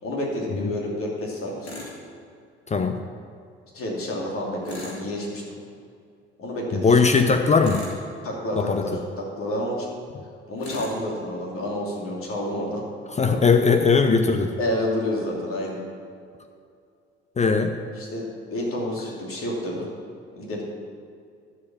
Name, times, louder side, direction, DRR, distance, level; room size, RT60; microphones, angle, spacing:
voice 1, 0.0-1.7 3.7-5.6 6.4-7.0 8.2-9.9 10.5-12.8 13.2-13.4 14.6-15.8 18.0-18.3 18.5-19.9 20.4-20.6, left 1 dB, 45° left, -3 dB, 2.7 m, -29 dB
Tools, 1.6-2.0 4.6-5.1 7.6-8.1 10.6-11.0, left 2 dB, 80° left, 2.3 m, -37 dB
voice 2, 6.8-7.8 8.6-8.9 13.2-14.5 17.4-17.7, left 4 dB, 20° left, 7 dB, 0.7 m, -19 dB
12.0 x 5.0 x 7.0 m, 2.3 s
figure-of-eight pair, 55°, 32 cm